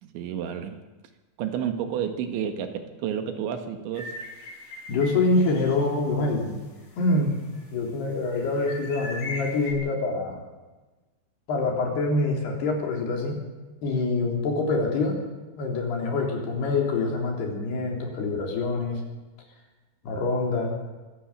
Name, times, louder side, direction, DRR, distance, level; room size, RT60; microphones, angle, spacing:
voice 1, 0.0-0.8 1.4-4.1, right 8 dB, 80° right, 7 dB, 4.0 m, -30 dB
sound 1, 3.9-5.8 6.2-6.3 6.8-7.6 8.2-9.7, left 2 dB, 85° left, 8.8 m, -39 dB
voice 2, 4.9-6.6 7.0-7.4 7.7-10.4 11.5-13.4 13.8-15.2 15.6-19.0 20.1-20.7, left 3 dB, 65° left, 1 dB, 5.4 m, -25 dB
24.0 x 16.5 x 7.4 m, 1.2 s
omnidirectional pair, 5.2 m